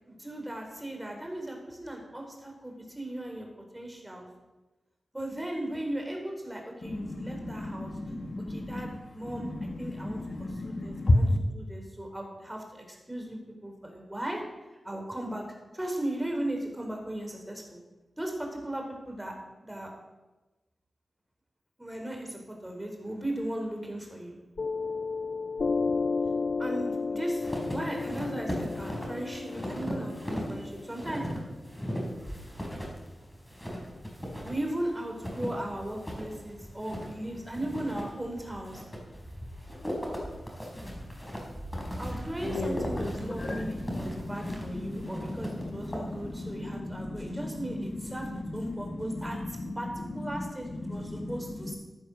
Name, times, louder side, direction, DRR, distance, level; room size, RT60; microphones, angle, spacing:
voice 1, 0.0-3.5 3.7-4.3 5.1-7.9 8.5-10.2 10.6-11.3 11.5-14.4 14.8-15.4 15.7-17.8 18.2-19.3 19.6-19.9 21.8-24.3 26.6-31.3 34.4-38.8 42.0-51.8, right 1 dB, 10° right, 2 dB, 4.0 m, -37 dB
voice 2, 6.8-9.0 9.2-11.4 42.4-51.7, left 1 dB, 45° left, 6 dB, 1.7 m, -33 dB
Piano, 24.6-31.6, left 4 dB, 60° left, 0.4 m, -33 dB
sound 1, 27.4-46.6, equal, 10° left, 4.4 m, -38 dB
15.0 x 10.5 x 6.4 m, 1.1 s
wide cardioid pair, 85°, 0 cm